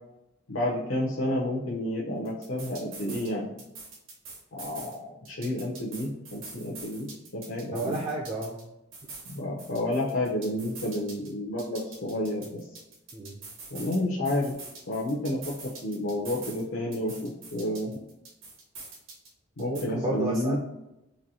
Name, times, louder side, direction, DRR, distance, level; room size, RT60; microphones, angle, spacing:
voice 1, 0.5-3.5 4.5-8.0 9.3-12.6 13.7-14.5 14.9-17.9 19.6-20.6, left 1 dB, 80° left, -5 dB, 0.7 m, -30 dB
sound 1, 2.2-3.3 3.6-5.0 5.2-8.6 8.9-11.3 11.6-14.0 14.2-16.6 16.9-19.3 19.6-19.8, right 3 dB, 70° right, 1.2 m, -44 dB
voice 2, 7.7-8.6 13.1-13.4 19.6-20.6, right 2 dB, 25° right, -2 dB, 0.4 m, -32 dB
4.3 x 2.6 x 2.7 m, 0.92 s
head